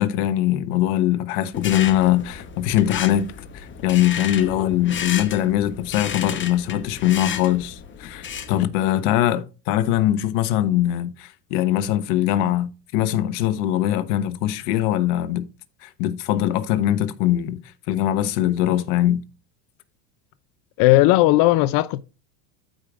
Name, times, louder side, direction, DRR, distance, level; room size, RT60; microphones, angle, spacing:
voice 1, 0.0-3.3 3.5-15.5 15.8-17.6 17.9-19.2, left 12 dB, 70° left, 1.1 m, -22 dB
sound 1, 1.5-8.6, left 7 dB, 25° left, 1.0 m, -33 dB
voice 2, 20.8-22.0, left 17 dB, 50° left, 0.5 m, -16 dB
14.0 x 5.0 x 2.4 m
supercardioid pair, 125°, 48 cm